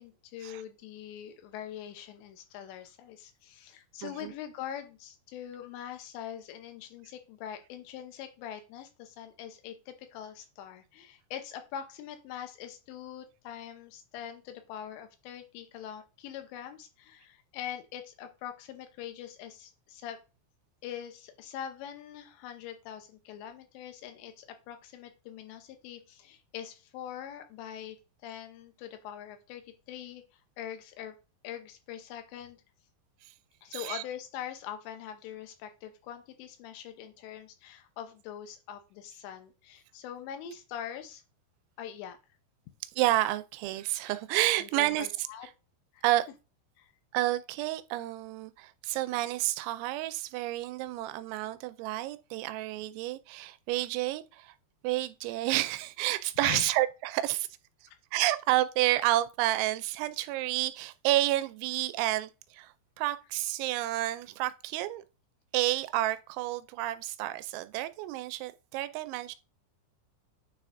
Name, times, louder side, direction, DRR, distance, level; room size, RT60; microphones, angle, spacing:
voice 1, 0.0-20.2 20.8-28.0 28.2-31.2 31.4-32.6 33.6-41.2 41.8-42.2 44.6-45.5 45.9-46.0 46.8-46.9 56.4-56.7 57.9-58.0, left 10 dB, 80° left, 3.0 m, -43 dB
voice 2, 4.0-4.3 33.2-33.3 33.7-34.0 43.0-45.3 46.0-46.3 47.1-54.5 54.8-57.5 58.1-65.0 65.5-69.4, right 16 dB, 90° right, 2.9 m, -30 dB
9.5 x 4.2 x 2.6 m
omnidirectional pair, 5.3 m